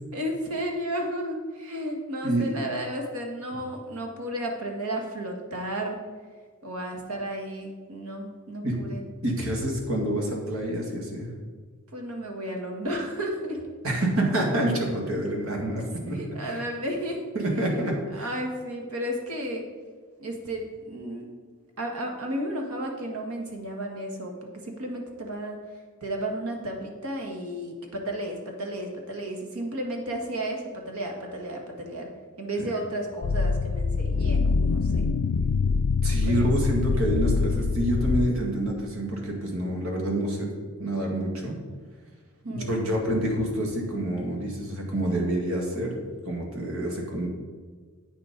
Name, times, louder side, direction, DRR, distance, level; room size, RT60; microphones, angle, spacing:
voice 1, 0.1-6.0 6.6-9.0 11.9-13.6 16.2-17.2 17.8-17.9 18.1-19.6 20.2-21.3 21.8-24.3 24.6-25.6 26.0-32.1 32.4-35.1 36.2-36.7 42.4-42.8, right 1 dB, 85° right, 2 dB, 1.7 m, -33 dB
voice 2, 2.2-2.5 8.6-8.8 9.2-11.3 13.8-16.6 17.3-18.3 32.6-32.7 36.0-40.5 40.8-41.6 42.5-46.0 46.3-47.3, right 1 dB, 65° right, 0 dB, 2.2 m, -27 dB
sound 1, 33.2-38.3, left 4 dB, 80° left, 0.4 m, -24 dB
8.6 x 6.9 x 5.2 m, 1.5 s
head